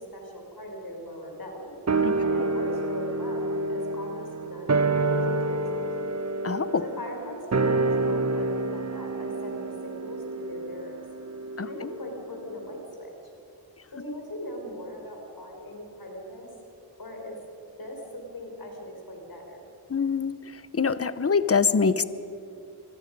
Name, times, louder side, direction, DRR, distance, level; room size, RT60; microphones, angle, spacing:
voice 1, 0.0-1.8 2.2-6.1 6.8-11.0 11.6-13.1 13.9-16.5 17.0-17.4 17.8-19.6, left 1 dB, 65° left, 1 dB, 4.6 m, -40 dB
sound 1, 1.9-12.5 12.7-12.8, right 3 dB, 40° right, 1.0 m, -28 dB
voice 2, 6.4-6.8 11.6-11.7 19.9-20.3 20.7-22.0, left 5 dB, 35° left, 14 dB, 0.8 m, -24 dB
27.5 x 20.5 x 5.4 m, 2.7 s
wide cardioid pair, 85°, 40 cm